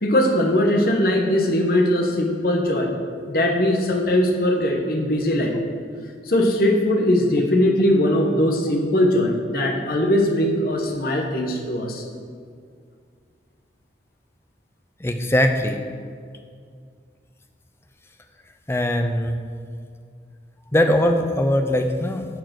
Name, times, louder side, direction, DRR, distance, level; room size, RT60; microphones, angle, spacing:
voice 1, 0.0-2.9 3.3-5.5 6.2-12.0, left 1 dB, 55° left, 1 dB, 1.2 m, -20 dB
voice 2, 15.0-15.8 18.7-19.4 20.7-22.3, left 1 dB, 15° left, 5 dB, 0.6 m, -20 dB
10.5 x 4.7 x 6.3 m, 2.1 s
head